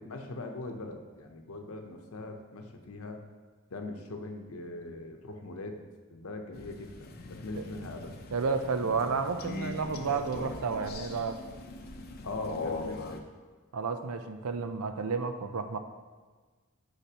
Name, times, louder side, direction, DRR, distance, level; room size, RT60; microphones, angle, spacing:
voice 1, 0.0-3.2 3.7-5.8 6.1-8.2 12.2-13.2, left 2 dB, 75° left, 4 dB, 0.8 m, -41 dB
Crow, 6.5-13.2, left 3 dB, 45° left, 0.6 m, -41 dB
voice 2, 8.3-11.4 13.7-15.8, right 5 dB, 85° right, 8 dB, 0.6 m, -31 dB
9.9 x 5.8 x 2.9 m, 1.4 s
head